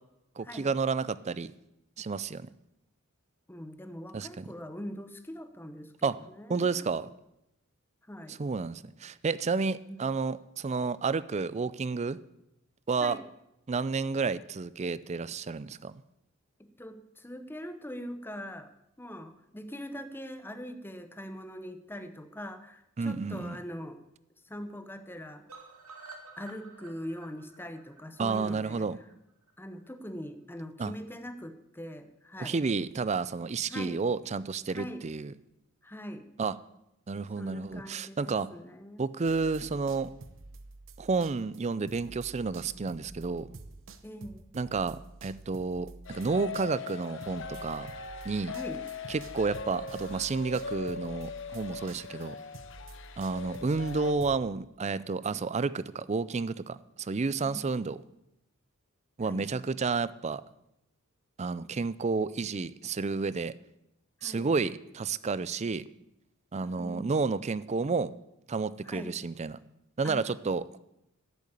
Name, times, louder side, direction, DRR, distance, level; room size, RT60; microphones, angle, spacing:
voice 1, 0.4-1.5 2.0-2.5 4.1-4.5 6.0-6.2 6.5-7.1 8.3-12.2 12.9-13.2 13.7-16.0 23.0-23.6 28.2-29.0 30.8-30.9 32.4-35.3 36.4-36.6 37.1-38.5 39.0-40.1 41.0-43.6 44.5-47.9 48.2-48.5 49.1-52.4 53.2-58.0 59.2-60.4 61.4-63.5 64.2-65.9 66.5-68.1 68.5-69.6 70.0-70.8, right 4 dB, 30° right, 17 dB, 0.4 m, -31 dB
voice 2, 3.5-6.1 6.4-6.8 8.1-8.4 9.9-10.0 13.0-13.2 16.6-18.7 19.0-24.0 24.4-25.4 26.4-28.9 29.6-32.6 33.7-34.0 34.7-35.0 35.8-36.2 37.3-39.0 44.0-44.5 48.5-48.8 57.4-57.6 59.2-59.5 64.2-64.5 66.6-67.1 68.8-69.2 70.0-70.2, equal, 10° left, 9 dB, 0.9 m, -42 dB
sound 1, 25.5-29.5 29.8-29.9 30.2-30.3 30.6-30.7, right 3 dB, 90° right, 2.2 m, -51 dB
sound 2, 39.2-41.6 41.9-54.4, right 2 dB, 65° right, 0.9 m, -49 dB
sound 3, 46.0-54.1, left 5 dB, 60° left, 1.0 m, -40 dB
10.5 x 8.3 x 8.4 m, 0.85 s
head